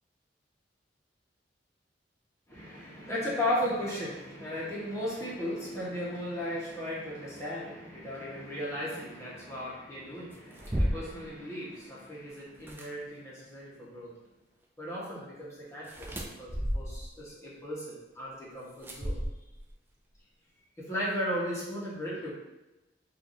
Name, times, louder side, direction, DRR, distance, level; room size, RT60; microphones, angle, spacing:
voice 1, 2.5-14.1 14.8-19.2 20.8-22.3, equal, 15° left, -7 dB, 1.0 m, -36 dB
sound 1, 10.3-11.3 12.5-12.9 15.8-17.2 18.8-19.7, equal, 15° right, 0.4 m, -33 dB
4.6 x 2.5 x 2.5 m, 0.99 s
head